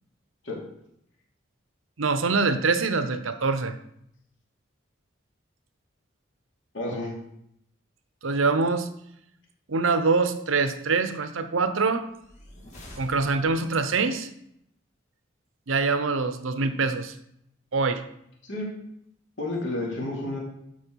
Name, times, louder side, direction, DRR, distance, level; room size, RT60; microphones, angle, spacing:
voice 1, 2.0-3.8 8.2-8.9 9.7-12.1 13.0-14.3 15.7-17.1 17.7-18.0, right 4 dB, 85° right, 10 dB, 0.8 m, -24 dB
voice 2, 6.7-7.1 18.4-18.7 19.4-20.4, left 2 dB, 70° left, -2 dB, 2.8 m, -30 dB
sound 1, 12.1-13.9, equal, 35° left, 2.2 m, -47 dB
12.0 x 4.5 x 4.6 m, 0.75 s
head